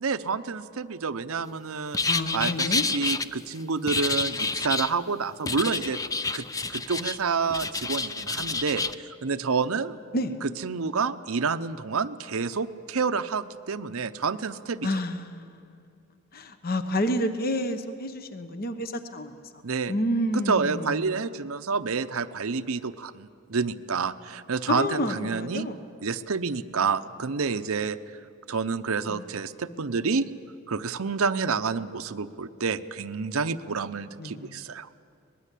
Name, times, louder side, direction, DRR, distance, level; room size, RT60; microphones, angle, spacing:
voice 1, 0.0-6.0 6.3-10.0 10.4-14.9 19.6-19.9 20.3-25.7 26.0-28.0 28.5-30.2 30.7-34.9, right 5 dB, 70° right, 10 dB, 0.7 m, -29 dB
sound 1, 1.9-3.2 3.9-4.9 5.5-7.2 7.5-8.9, left 4 dB, 15° left, 0.6 m, -28 dB
voice 2, 2.1-2.8 10.1-10.3 14.8-15.8 16.3-19.4 19.9-21.0 24.7-25.8 29.1-29.2 34.2-34.6, left 1 dB, 45° left, 8 dB, 1.1 m, -29 dB
24.0 x 20.5 x 8.4 m, 2.5 s
head